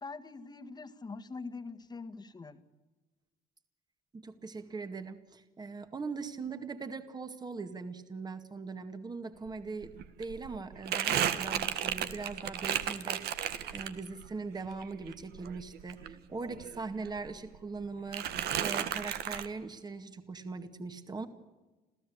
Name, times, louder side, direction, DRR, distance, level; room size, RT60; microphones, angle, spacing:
voice 1, 0.0-2.6, left 4 dB, 25° left, 8 dB, 1.8 m, -43 dB
voice 2, 4.1-9.9 10.2-21.3, right 4 dB, 25° right, 8 dB, 2.0 m, -41 dB
Crumpling crinkling, 9.5-9.6 9.8-14.3 14.7-16.8 17.1-17.8 18.1-19.5, right 10 dB, 70° right, 1.7 m, -34 dB
28.0 x 15.5 x 8.7 m, 1.2 s
cardioid pair, 110°, 17 cm